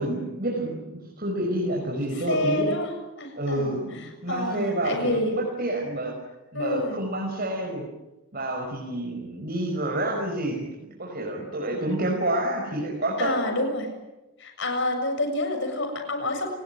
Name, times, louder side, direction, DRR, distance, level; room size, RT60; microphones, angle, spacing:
voice 1, 0.0-2.7 3.4-6.1 6.5-7.9 8.3-13.4, right 1 dB, 40° right, -1 dB, 5.4 m, -28 dB
voice 2, 2.1-2.9 3.2-5.3 6.5-7.0 13.2-13.9 14.4-16.5, left 1 dB, 55° left, 5 dB, 7.2 m, -28 dB
30.0 x 19.5 x 9.5 m, 1.0 s
head